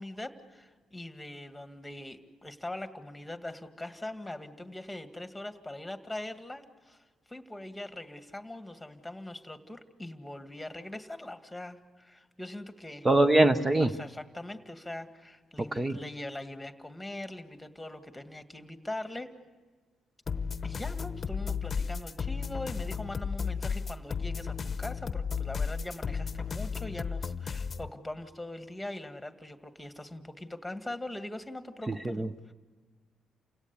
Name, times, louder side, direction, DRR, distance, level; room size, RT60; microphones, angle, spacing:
voice 1, 0.0-13.1 13.8-19.3 20.6-32.5, left 1 dB, 5° left, 8 dB, 1.9 m, -42 dB
voice 2, 13.0-13.9 15.7-16.0 31.9-32.3, right 2 dB, 20° right, 9 dB, 0.7 m, -23 dB
sound 1, 20.3-27.9, left 6 dB, 40° left, 0.9 m, -34 dB
29.0 x 17.0 x 8.3 m, 1.4 s
cardioid pair, 90°, 0 cm